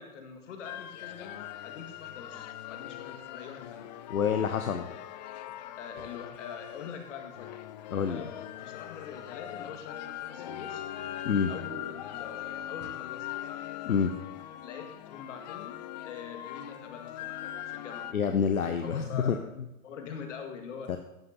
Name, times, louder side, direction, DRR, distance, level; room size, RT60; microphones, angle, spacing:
voice 1, 0.0-3.9 5.8-7.6 8.1-8.3 8.6-10.8 11.5-13.3 14.6-18.1 18.8-19.5 19.8-20.9, left 6 dB, 55° left, 4 dB, 2.1 m, -44 dB
sound 1, 0.6-18.1, left 12 dB, 30° left, 0.5 m, -41 dB
voice 2, 4.1-4.9 7.9-8.2 11.2-11.5 13.8-14.1 18.1-19.4 20.9-21.0, left 7 dB, 75° left, 7 dB, 0.9 m, -27 dB
14.5 x 11.5 x 2.9 m, 0.90 s
figure-of-eight pair, 110°, 43 cm